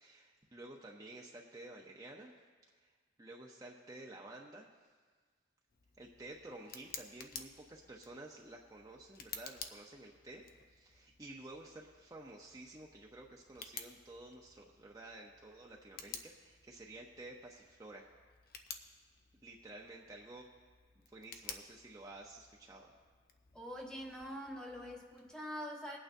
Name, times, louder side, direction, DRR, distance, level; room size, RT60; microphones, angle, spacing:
voice 1, 0.0-2.3 2.8-2.9 3.2-4.7 6.0-18.1 19.4-20.5 21.0-23.0, right 2 dB, 20° right, -2 dB, 0.7 m, -52 dB
Tick, 5.7-25.4, left 6 dB, 55° left, 0.7 m, -53 dB
voice 2, 23.5-26.0, equal, 5° left, 0 dB, 1.1 m, -44 dB
21.5 x 8.8 x 2.7 m, 1.5 s
head